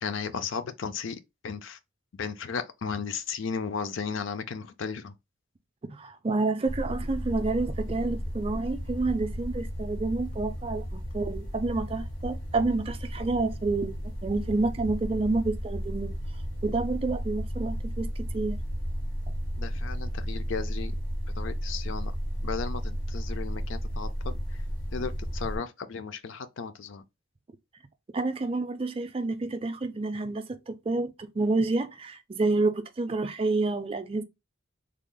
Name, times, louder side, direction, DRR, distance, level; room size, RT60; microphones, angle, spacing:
voice 1, 0.0-1.8 2.1-5.1 19.6-21.0 21.4-22.1 22.4-24.4 24.9-27.0, left 5 dB, 70° left, 0.4 m, -35 dB
voice 2, 5.8-16.1 16.6-18.1 18.3-18.6 28.1-34.2, right 3 dB, 30° right, 0.4 m, -29 dB
sound 1, 6.7-25.6, equal, 85° left, 1.6 m, -33 dB
3.4 x 2.0 x 3.7 m
head